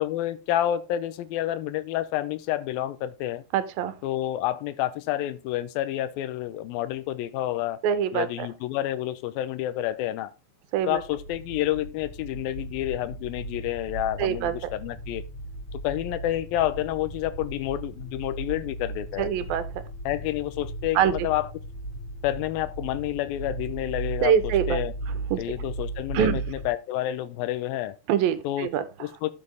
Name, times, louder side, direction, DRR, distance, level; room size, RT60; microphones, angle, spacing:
voice 1, 0.0-3.4 4.0-7.8 8.1-10.3 10.9-15.2 15.7-19.3 20.1-21.5 22.2-24.9 25.4-28.0 28.4-28.7 29.0-29.3, left 13 dB, 85° left, 2.6 m, -29 dB
voice 2, 3.5-3.9 7.8-8.5 10.7-11.0 14.2-14.5 19.2-19.6 21.0-21.1 24.2-24.8 25.3-25.4 26.1-26.4 28.1-28.8, right 9 dB, 80° right, 2.7 m, -24 dB
sound 1, 10.8-26.7, right 2 dB, 25° left, 8.1 m, -36 dB
12.0 x 7.6 x 3.5 m
omnidirectional pair, 4.2 m